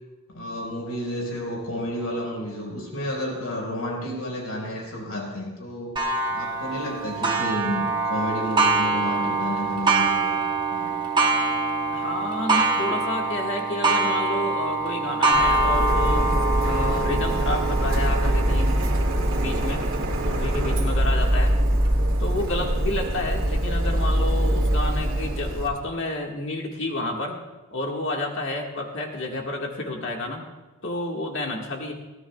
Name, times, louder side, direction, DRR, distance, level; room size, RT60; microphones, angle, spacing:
voice 1, 0.3-6.0 6.3-10.4 10.7-10.9, equal, 80° left, 0 dB, 4.9 m, -31 dB
Clock, 6.0-21.3 21.9-22.0 22.5-22.6 23.6-23.7, right 3 dB, 20° right, 1.0 m, -25 dB
voice 2, 11.9-16.2 16.6-18.8 19.3-19.8 20.2-21.5 22.2-27.4 27.7-30.4 30.8-31.9, left 2 dB, 55° left, 0 dB, 1.8 m, -30 dB
Printer, 15.3-25.7, right 1 dB, 65° right, 2.2 m, -23 dB
23.0 x 16.5 x 2.4 m, 1.2 s
head